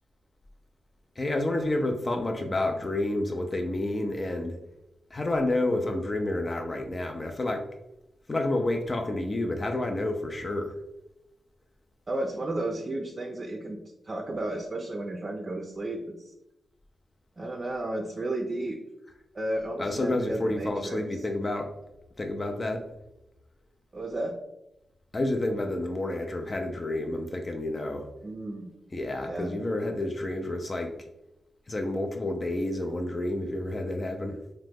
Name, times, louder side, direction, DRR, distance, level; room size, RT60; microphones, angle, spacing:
voice 1, 1.2-4.6 5.1-7.7 8.3-10.8 19.8-21.7 22.2-22.9 25.1-28.1 28.9-30.9 31.7-34.4, left 1 dB, 35° left, 3 dB, 0.4 m, -29 dB
voice 2, 12.1-13.8 14.0-16.3 17.4-18.8 19.3-21.0 23.9-24.3 28.2-28.7 29.2-29.5, right 1 dB, 45° right, 2 dB, 0.4 m, -33 dB
2.9 x 2.1 x 3.4 m, 0.90 s
cardioid pair, 65°, 0 cm